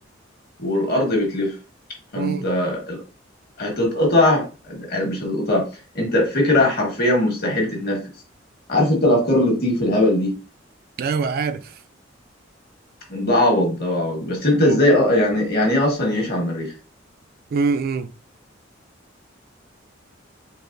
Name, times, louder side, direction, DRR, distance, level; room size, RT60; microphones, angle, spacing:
voice 1, 0.6-1.5 2.1-3.0 3.6-5.7 5.9-8.0 8.7-10.3 13.1-16.7, left 1 dB, 55° left, 1.4 m, -20 dB
voice 2, 2.1-2.5 11.0-11.7 14.6-14.8 17.5-18.1, right 4 dB, 50° right, 0.3 m, -24 dB
4.0 x 3.0 x 2.5 m
head